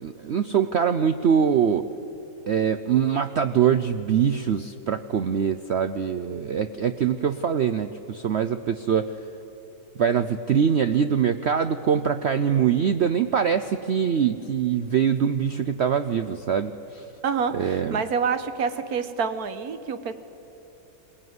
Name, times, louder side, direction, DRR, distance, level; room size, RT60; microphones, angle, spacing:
voice 1, 0.0-1.9 2.5-9.1 10.0-17.0 17.5-18.0, right 7 dB, 75° right, 10 dB, 0.6 m, -23 dB
voice 2, 17.2-20.1, right 6 dB, 60° right, 10 dB, 1.5 m, -27 dB
22.5 x 18.5 x 9.5 m, 3.0 s
omnidirectional pair, 1.9 m